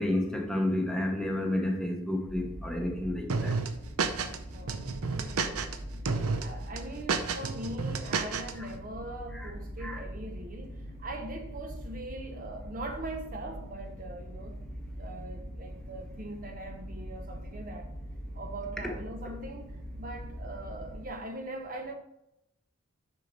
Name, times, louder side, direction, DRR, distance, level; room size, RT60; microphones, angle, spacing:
voice 1, 0.0-3.5 9.3-9.5 9.8-10.0, left 1 dB, 5° left, 0.8 m, -30 dB
sound 1, 2.3-21.1, equal, 60° right, 1.8 m, -42 dB
sound 2, 3.3-4.4 4.7-5.8 6.1-6.4 6.8-8.5, right 4 dB, 80° right, 0.6 m, -30 dB
voice 2, 4.5-5.9 6.4-14.6 15.0-17.9 18.3-21.9, right 1 dB, 40° right, 0.7 m, -41 dB
6.3 x 5.6 x 4.0 m
head